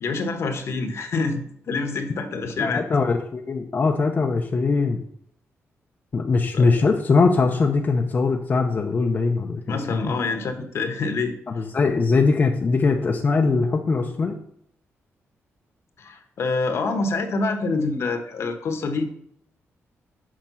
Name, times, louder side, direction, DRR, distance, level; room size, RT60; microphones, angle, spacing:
voice 1, 0.0-2.8 6.5-6.6 9.7-11.3 16.0-19.1, left 3 dB, 65° left, 6 dB, 1.3 m, -26 dB
voice 2, 2.6-5.0 6.1-10.1 11.5-14.4, left 4 dB, 40° left, 2 dB, 0.7 m, -21 dB
7.5 x 5.1 x 5.6 m, 0.70 s
cardioid pair, 115°, 5 cm